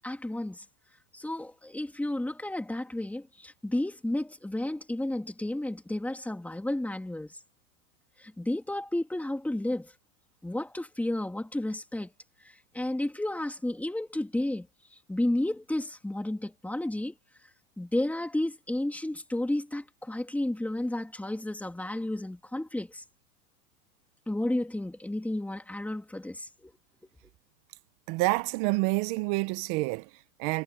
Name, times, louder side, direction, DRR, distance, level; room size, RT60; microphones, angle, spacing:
voice 1, 0.0-0.6 1.1-7.3 8.2-9.9 10.4-12.1 12.7-14.7 15.1-17.1 17.8-23.0 24.3-26.7, left 1 dB, 5° left, 2.9 m, -32 dB
voice 2, 28.1-30.6, right 23 dB, 40° right, 1.2 m, -28 dB
hypercardioid pair, 135°, 48 cm